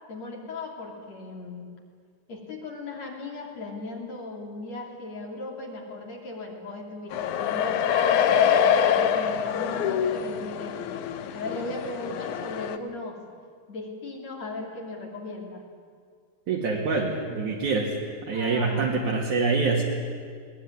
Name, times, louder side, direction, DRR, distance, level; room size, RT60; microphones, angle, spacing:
voice 1, 0.1-1.7 2.3-10.7 11.3-13.2 13.7-15.6 18.3-19.3, left 2 dB, 45° left, 1 dB, 3.9 m, -37 dB
sound 1, 7.1-12.8, left 8 dB, 75° left, 1.8 m, -25 dB
voice 2, 16.5-17.9 18.3-19.8, right 4 dB, 55° right, -2 dB, 3.2 m, -25 dB
22.0 x 19.0 x 9.8 m, 2.1 s
omnidirectional pair, 4.7 m